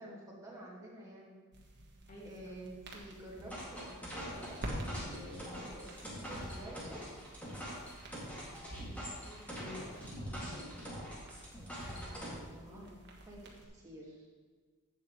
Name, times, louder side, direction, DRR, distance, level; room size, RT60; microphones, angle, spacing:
voice 1, 0.0-1.4 2.2-7.2 11.9-12.9 13.2-14.3, right 1 dB, 15° right, -5 dB, 2.1 m, -50 dB
sound 1, 1.5-13.6, right 1 dB, 50° right, 1.4 m, -50 dB
voice 2, 2.1-2.6 8.9-11.0 12.7-12.9, left 1 dB, 35° left, -4 dB, 2.3 m, -52 dB
sound 2, 3.4-12.3, equal, 5° left, 2.4 m, -43 dB
11.5 x 8.3 x 3.2 m, 1.5 s
head